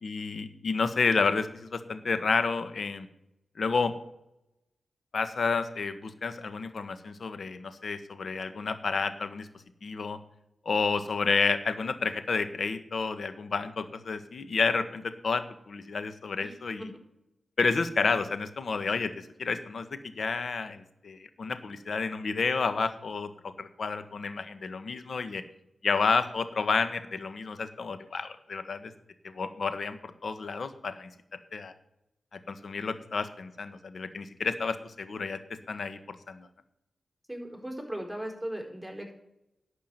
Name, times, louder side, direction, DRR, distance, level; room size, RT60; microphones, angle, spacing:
voice 1, 0.0-3.1 3.6-3.9 5.1-9.5 9.8-10.2 10.6-16.9 17.6-25.4 25.8-28.9 29.2-31.1 31.5-31.7 32.3-35.4 35.7-36.5, left 4 dB, 65° left, 11 dB, 1.3 m, -30 dB
voice 2, 16.4-16.9 37.3-39.1, right 1 dB, 5° right, 2 dB, 4.6 m, -38 dB
11.5 x 6.1 x 9.2 m, 0.84 s
cardioid pair, 50°, 0 cm